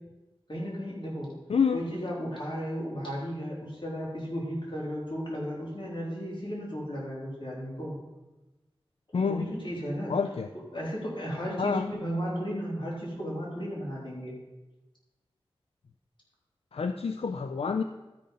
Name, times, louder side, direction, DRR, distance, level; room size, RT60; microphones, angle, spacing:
voice 1, 0.5-1.3 1.7-7.9 9.1-10.2 10.7-14.3, equal, 55° left, -5 dB, 3.5 m, -34 dB
voice 2, 1.5-1.8 9.1-9.5 10.1-10.5 11.6-11.9 16.7-17.8, left 5 dB, 85° left, 8 dB, 0.4 m, -27 dB
12.5 x 5.3 x 5.5 m, 1.1 s
wide cardioid pair, 65°, 10 cm